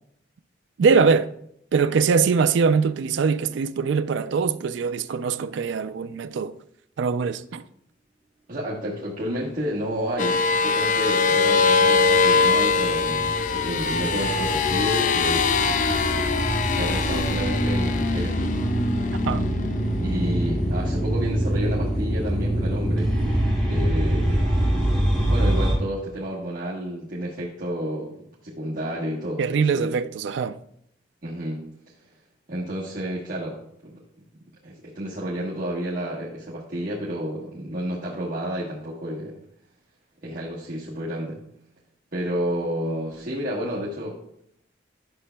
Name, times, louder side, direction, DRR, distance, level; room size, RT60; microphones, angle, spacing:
voice 1, 0.8-1.3 1.7-6.5 7.0-7.6 19.2-19.4 29.4-30.6, right 5 dB, 70° right, 0.3 m, -22 dB
voice 2, 8.5-15.5 16.6-18.4 20.0-23.2 23.7-24.5 25.3-28.2 28.4-29.9 31.2-31.6 32.5-34.0 34.6-39.4 40.2-41.4 42.1-44.2, equal, 45° right, 1.2 m, -31 dB
sound 1, 10.2-21.0, left 4 dB, 40° left, 0.4 m, -23 dB
sound 2, 10.9-25.7, right 1 dB, 5° left, 2.2 m, -25 dB
11.0 x 6.7 x 2.2 m
head